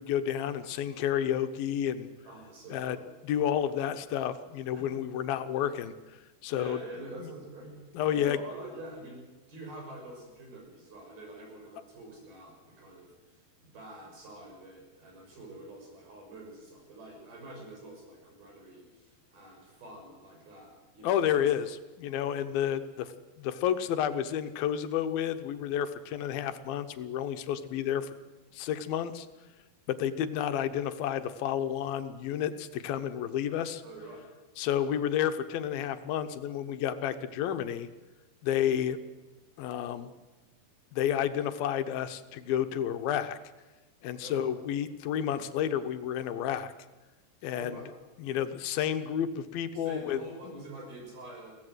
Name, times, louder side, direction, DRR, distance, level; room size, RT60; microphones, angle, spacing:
voice 1, 0.0-2.1 2.7-3.0 3.2-5.9 6.4-6.8 7.2-7.3 7.9-8.4 21.0-23.1 23.4-28.1 28.5-29.3 29.9-33.8 34.6-37.9 38.4-39.0 39.6-40.1 40.9-43.4 44.0-46.7 47.4-47.8 48.2-50.2, left 10 dB, 80° left, 10 dB, 2.8 m, -30 dB
voice 2, 2.2-3.0 4.7-5.0 6.5-7.8 8.0-9.2 9.5-21.5 22.2-22.4 27.7-27.8 33.8-34.3 44.2-44.5 47.5-47.9 49.7-51.5, right 2 dB, 85° right, 0 dB, 8.3 m, -46 dB
22.5 x 17.0 x 8.0 m, 1.2 s
omnidirectional pair, 4.2 m